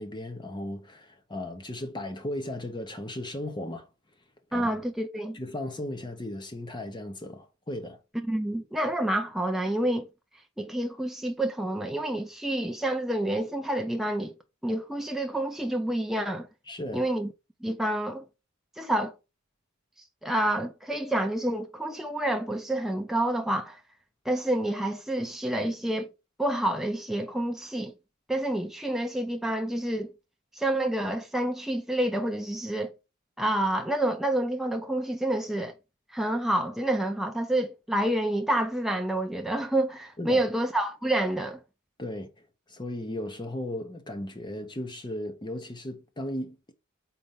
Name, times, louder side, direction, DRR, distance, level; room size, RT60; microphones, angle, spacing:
voice 1, 0.0-3.9 4.5-4.7 5.3-8.0 16.7-17.1 40.2-40.4 42.0-46.6, left 1 dB, 20° left, 0.9 m, -36 dB
voice 2, 4.5-5.4 8.3-10.1 10.6-14.3 14.6-16.5 16.9-17.3 17.6-18.3 18.8-19.1 20.2-23.8 24.3-26.1 26.4-27.9 28.3-30.1 30.5-32.9 33.4-35.7 36.1-41.6, right 1 dB, ahead, 0.5 m, -28 dB
4.3 x 4.3 x 5.3 m
head